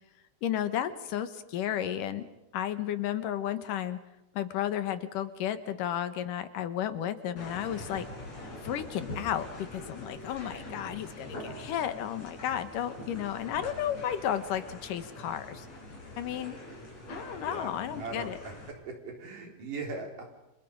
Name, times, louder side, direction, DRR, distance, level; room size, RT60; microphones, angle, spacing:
voice 1, 0.4-2.2 2.5-4.0 4.3-8.1 8.6-15.7 16.2-16.6 17.1-18.4, left 10 dB, 80° left, 11 dB, 2.9 m, -33 dB
sound 1, 7.4-18.7, left 1 dB, 50° left, 7.1 m, -44 dB
voice 2, 17.4-17.7 18.0-18.3 19.0-20.2, right 3 dB, 75° right, 2 dB, 5.4 m, -39 dB
29.5 x 26.5 x 5.3 m, 0.97 s
omnidirectional pair, 3.8 m